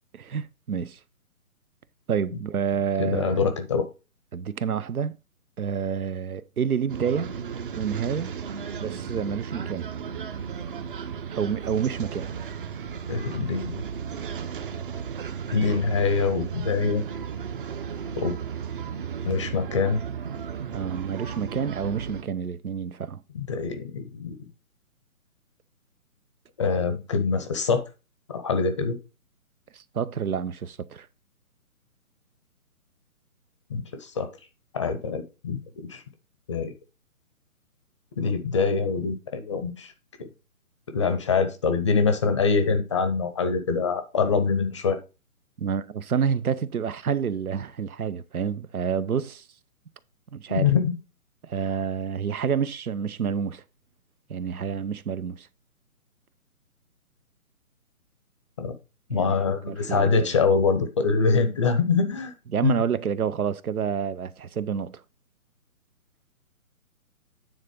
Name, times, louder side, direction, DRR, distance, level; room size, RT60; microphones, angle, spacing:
voice 1, 0.1-1.0 2.1-3.4 4.3-5.1 5.6-7.3 7.7-8.3 8.8-9.9 11.3-12.3 20.7-23.2 29.7-31.1 45.6-49.4 50.3-50.7 51.4-53.6 54.3-55.5 59.1-59.4 59.7-60.4 62.5-65.0, right 7 dB, 80° right, 0.8 m, -28 dB
voice 2, 3.0-3.9 13.1-13.8 15.5-17.0 18.2-18.4 19.2-20.0 23.3-24.5 26.6-27.8 28.3-29.0 33.7-34.3 34.7-36.0 36.5-36.7 38.2-39.9 40.9-45.0 50.5-50.9 58.6-58.7 59.1-62.3 62.6-62.7, left 5 dB, 20° left, 0.7 m, -24 dB
sound 1, 6.9-22.2, right 7 dB, 35° right, 0.9 m, -35 dB
9.5 x 3.9 x 5.2 m
hypercardioid pair, 150°, 43 cm